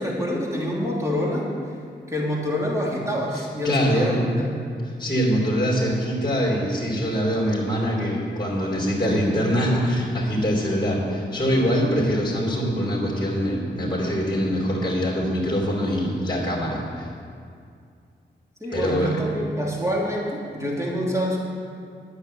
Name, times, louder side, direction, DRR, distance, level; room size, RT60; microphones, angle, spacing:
voice 1, 0.0-1.5 2.1-4.7 9.0-9.3 18.6-21.4, equal, 15° right, -4 dB, 3.1 m, -26 dB
voice 2, 3.6-4.2 5.0-17.1 18.7-19.2, equal, 25° left, -5 dB, 3.3 m, -23 dB
9.8 x 6.8 x 8.8 m, 2.3 s
cardioid pair, 65°, 19 cm